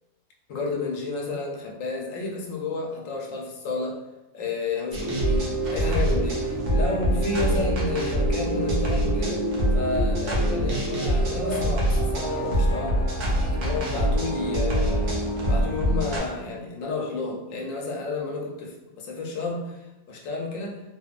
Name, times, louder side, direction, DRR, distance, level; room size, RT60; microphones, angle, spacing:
voice 1, 0.5-4.0 4.3-13.0 13.5-20.8, left 3 dB, 80° left, 0 dB, 0.9 m, -31 dB
sound 1, 4.9-16.2, right 1 dB, 80° right, 1.1 m, -24 dB
2.9 x 2.1 x 2.3 m, 1.0 s
omnidirectional pair, 1.4 m